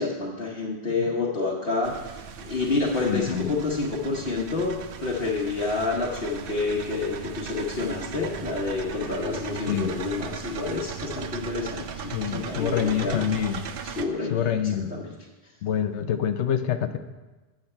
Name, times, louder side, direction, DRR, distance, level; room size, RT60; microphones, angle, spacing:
voice 1, 0.0-13.2 14.0-14.5 14.9-15.0, left 3 dB, 60° left, -4 dB, 1.2 m, -28 dB
voice 2, 1.0-1.4 3.1-3.5 9.6-9.9 12.1-13.6 14.3-14.9 15.6-17.0, left 9 dB, 85° left, 9 dB, 0.9 m, -26 dB
sound 1, 1.8-14.0, right 6 dB, 60° right, 0.7 m, -37 dB
8.9 x 7.1 x 4.3 m, 1.2 s
omnidirectional pair, 1.1 m